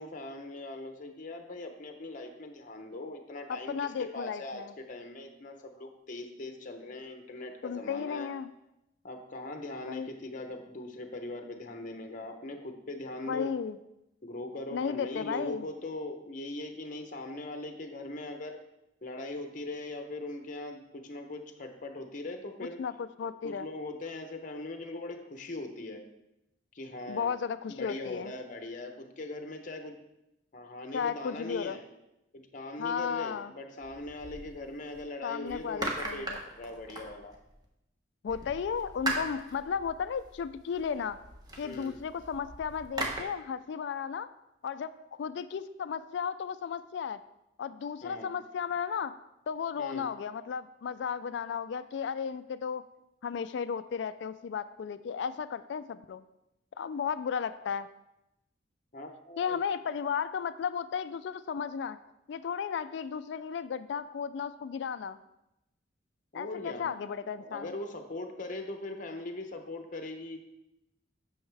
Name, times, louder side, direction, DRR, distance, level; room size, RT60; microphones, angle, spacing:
voice 1, 0.0-8.3 9.0-13.5 14.2-18.6 19.0-22.8 23.4-26.0 26.7-27.4 27.7-30.0 30.5-31.8 32.3-37.3 41.6-42.0 48.0-48.3 49.8-50.1 58.9-59.6 66.3-66.9 67.3-70.4, left 2 dB, 45° left, 5 dB, 0.7 m, -40 dB
voice 2, 3.5-4.7 7.6-8.5 9.9-10.1 13.3-13.8 14.7-15.7 22.8-23.7 27.1-28.3 30.9-31.8 32.8-33.5 35.2-36.4 38.2-41.2 41.6-44.3 44.6-44.9 45.2-47.2 47.6-49.1 49.5-52.8 53.2-56.2 56.8-57.9 59.4-62.0 62.3-65.2 66.3-67.7, left 6 dB, 65° left, 13 dB, 0.3 m, -34 dB
sound 1, 33.8-35.0 35.5-37.6 38.3-43.2, right 2 dB, 20° right, 1.1 m, -39 dB
8.9 x 6.3 x 3.3 m, 0.89 s
head